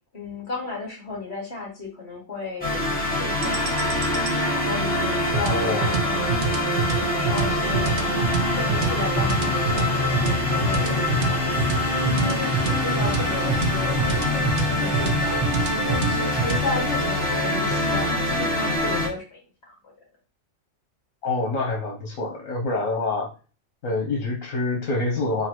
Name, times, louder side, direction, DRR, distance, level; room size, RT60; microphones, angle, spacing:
voice 1, 0.1-3.8 4.5-8.0 8.3-11.5 12.0-15.5 15.9-19.9, left 3 dB, 55° left, -2 dB, 1.9 m, -34 dB
sound 1, 2.6-19.1, left 2 dB, 5° left, 1.4 m, -24 dB
sound 2, 3.4-18.8, right 4 dB, 50° right, 0.7 m, -28 dB
voice 2, 5.5-5.8 21.2-23.3 23.8-25.5, left 2 dB, 80° left, 0 dB, 1.4 m, -26 dB
4.0 x 2.7 x 4.4 m, 0.34 s
omnidirectional pair, 1.4 m